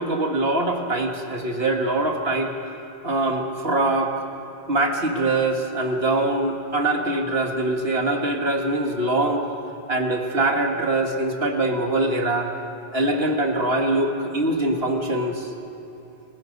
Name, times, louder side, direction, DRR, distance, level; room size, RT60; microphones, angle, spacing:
voice 1, 0.0-2.5 3.0-4.1 4.7-9.5 9.9-12.5 12.9-15.5, right 2 dB, 70° right, 3 dB, 2.2 m, -23 dB
29.5 x 21.0 x 5.4 m, 2.9 s
omnidirectional pair, 1.1 m